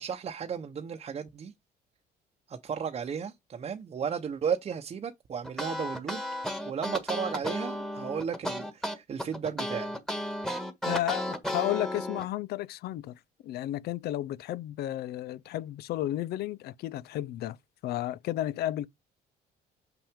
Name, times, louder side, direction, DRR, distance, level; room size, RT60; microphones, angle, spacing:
voice 1, 0.0-1.5 2.5-6.2 6.7-9.9, right 7 dB, 40° right, 0.9 m, -34 dB
sound 1, 5.4-12.2, equal, 5° left, 1.5 m, -33 dB
voice 2, 10.8-17.6 17.8-18.9, left 14 dB, 70° left, 0.5 m, -33 dB
6.9 x 5.8 x 3.6 m
cardioid pair, 110°, 17 cm